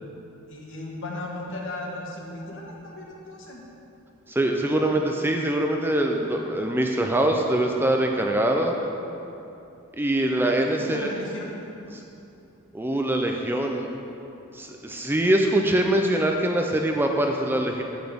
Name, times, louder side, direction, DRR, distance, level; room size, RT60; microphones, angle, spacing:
voice 1, 0.5-3.6 4.6-5.1 10.7-11.5, left 1 dB, 60° left, -1 dB, 1.4 m, -36 dB
voice 2, 4.3-8.8 10.0-11.1 11.9-12.0 12.7-13.9 14.5-17.8, right 1 dB, 10° right, 2 dB, 0.4 m, -23 dB
10.5 x 8.1 x 3.5 m, 2.8 s
head